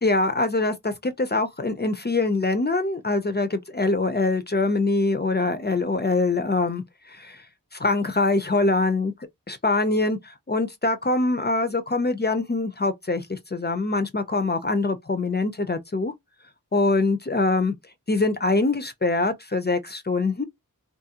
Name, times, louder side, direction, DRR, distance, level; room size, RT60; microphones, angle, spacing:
voice 1, 0.0-7.4 7.7-9.1 9.5-16.1 16.7-17.8 18.1-20.4, left 3 dB, 30° left, 0.4 m, -24 dB
2.6 x 2.4 x 2.7 m
wide cardioid pair, 55°, 36 cm